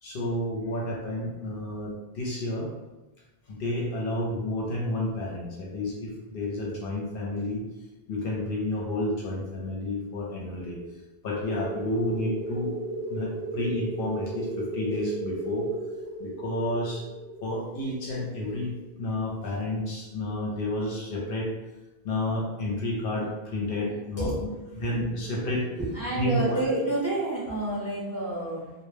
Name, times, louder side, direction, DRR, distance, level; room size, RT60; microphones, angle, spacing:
voice 1, 0.0-2.7 3.5-7.6 8.1-10.8 11.2-12.7 13.1-15.7 16.2-17.1 17.4-21.5 22.0-24.5 24.8-25.7 26.1-26.6, left 1 dB, 65° left, -3 dB, 0.7 m, -30 dB
sound 1, 11.4-19.7, right 2 dB, 25° left, 0.7 m, -36 dB
voice 2, 24.2-24.5 25.8-28.7, right 1 dB, 15° right, -7 dB, 0.6 m, -29 dB
2.1 x 2.0 x 3.1 m, 1.1 s
omnidirectional pair, 1.1 m